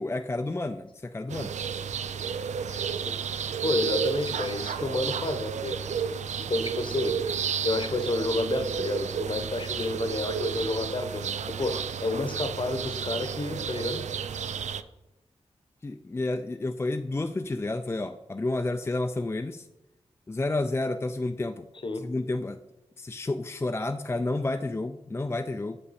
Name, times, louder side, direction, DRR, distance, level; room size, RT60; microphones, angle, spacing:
voice 1, 0.0-1.5 15.8-19.7 20.3-21.7 22.0-22.6 23.0-25.8, left 2 dB, 20° left, 7 dB, 0.3 m, -30 dB
sound 1, 1.3-14.8, right 7 dB, 85° right, 0.4 m, -32 dB
voice 2, 3.6-5.8 6.5-7.3 7.6-14.1 21.8-22.1, left 2 dB, 45° left, 9 dB, 0.9 m, -30 dB
7.0 x 5.6 x 4.1 m, 0.98 s
wide cardioid pair, 65°, 12 cm